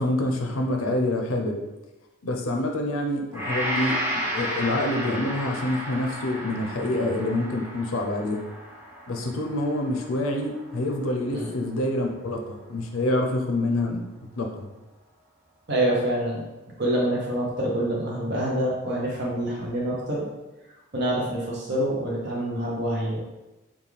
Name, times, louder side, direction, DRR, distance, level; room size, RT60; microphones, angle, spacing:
voice 1, 0.0-1.6 2.2-8.4 9.1-14.0 14.4-14.7, left 1 dB, 80° left, 3 dB, 0.6 m, -27 dB
Gong, 3.3-11.6 12.1-12.3, equal, 10° right, 0.7 m, -33 dB
voice 2, 15.7-16.4 16.8-20.3 20.9-23.2, right 1 dB, 55° right, -4 dB, 0.8 m, -26 dB
5.2 x 2.4 x 3.3 m, 1.1 s
head